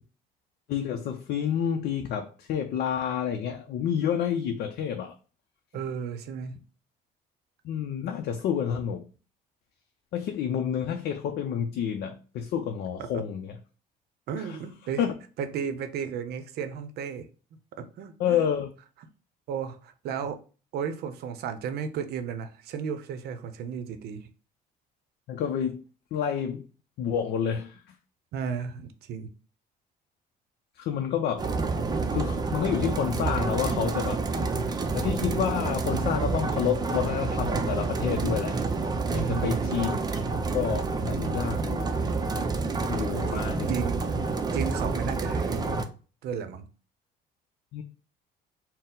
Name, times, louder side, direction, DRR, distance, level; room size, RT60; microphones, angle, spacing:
voice 1, 0.7-5.1 7.6-9.0 10.1-13.6 14.4-14.6 15.0-15.1 18.2-18.7 25.3-25.8 26.1-26.6 27.0-27.9 30.7-31.5 32.1-34.2 34.9-38.6 39.1-41.9 42.9-43.8 47.7-47.8, left 8 dB, 70° left, 0.5 m, -29 dB
voice 2, 5.7-6.6 13.0-13.2 14.3-15.0 15.4-17.3 17.8-18.4 19.5-20.4 20.7-24.3 28.3-29.3 39.2-39.9 43.1-44.0 44.5-45.8 46.2-46.7, right 7 dB, 70° right, 0.6 m, -34 dB
sound 1, 31.4-45.8, right 4 dB, 25° right, 0.5 m, -28 dB
4.2 x 2.1 x 3.7 m
cardioid pair, 110°, 17 cm